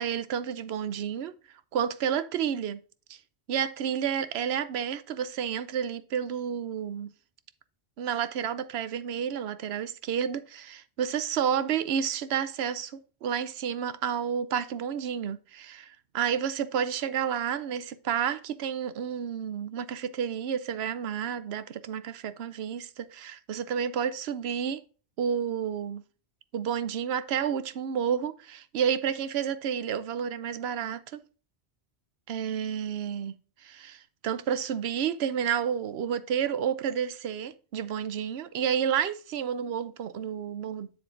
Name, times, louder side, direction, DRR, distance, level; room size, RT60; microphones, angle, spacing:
voice 1, 0.0-1.3 1.7-2.8 3.1-3.2 3.5-7.1 8.0-12.9 13.2-24.8 25.2-26.0 26.5-31.2 32.3-33.4 33.6-40.9, right 8 dB, 80° right, 0.9 m, -30 dB
7.6 x 7.0 x 2.5 m
omnidirectional pair, 1.1 m